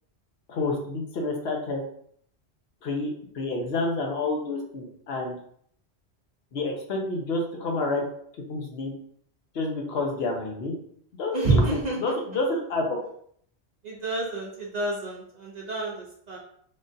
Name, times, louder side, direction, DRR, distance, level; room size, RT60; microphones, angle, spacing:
voice 1, 0.5-1.8 2.8-5.4 6.5-8.0 8.5-9.0 9.5-10.7 11.2-13.0, left 2 dB, 70° left, 1 dB, 0.9 m, -29 dB
voice 2, 11.3-12.0 13.8-16.4, right 2 dB, 50° right, -3 dB, 0.6 m, -27 dB
3.6 x 2.4 x 2.6 m, 0.64 s
omnidirectional pair, 1.1 m